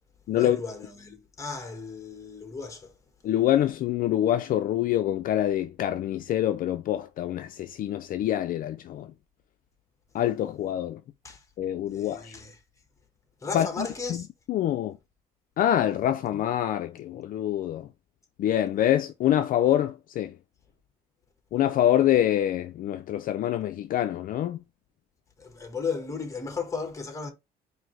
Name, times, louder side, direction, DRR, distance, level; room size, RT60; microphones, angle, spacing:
voice 1, 0.3-2.9 11.2-11.4 11.9-12.6 13.4-14.3 25.4-27.3, left 4 dB, 20° left, 1.2 m, -35 dB
voice 2, 3.2-9.1 10.1-11.0 11.6-12.3 13.5-14.2 14.5-15.0 15.6-17.9 18.4-20.3 21.5-24.6, left 12 dB, 55° left, 0.4 m, -25 dB
4.7 x 2.7 x 3.1 m
cardioid pair, 110°, 17 cm